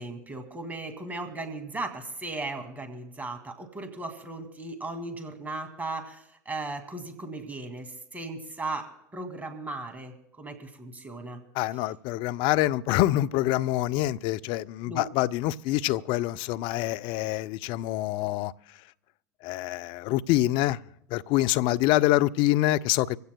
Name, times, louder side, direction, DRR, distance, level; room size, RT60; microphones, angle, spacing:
voice 1, 0.0-11.4 14.9-15.0 21.7-21.8, right 2 dB, 15° right, 2.3 m, -37 dB
voice 2, 11.5-18.5 19.4-20.8 21.1-23.2, left 15 dB, 60° left, 0.5 m, -26 dB
24.5 x 16.0 x 2.2 m
hypercardioid pair, 85°, 10 cm